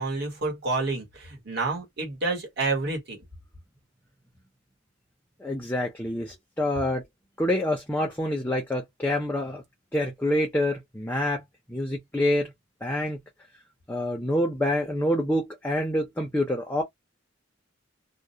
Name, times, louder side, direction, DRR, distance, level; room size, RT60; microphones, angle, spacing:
voice 1, 0.0-3.2, right 3 dB, 55° right, 1.2 m, -29 dB
voice 2, 5.4-7.0 7.4-9.6 9.9-11.4 11.7-12.5 12.8-13.2 13.9-16.8, left 1 dB, 10° left, 0.5 m, -27 dB
2.3 x 2.0 x 2.7 m
head